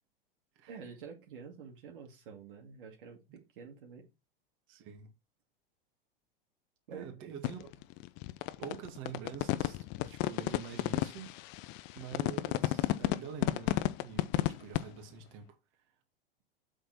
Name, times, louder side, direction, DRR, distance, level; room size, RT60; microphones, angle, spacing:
voice 1, 0.7-4.1 6.9-7.7, right 6 dB, 65° right, 2.5 m, -49 dB
voice 2, 4.7-5.1 6.9-7.7 8.6-11.3 11.9-15.6, right 7 dB, 45° right, 2.6 m, -46 dB
sound 1, 7.4-14.8, left 17 dB, 40° left, 0.6 m, -31 dB
7.8 x 6.6 x 4.3 m
figure-of-eight pair, 90°, 29 cm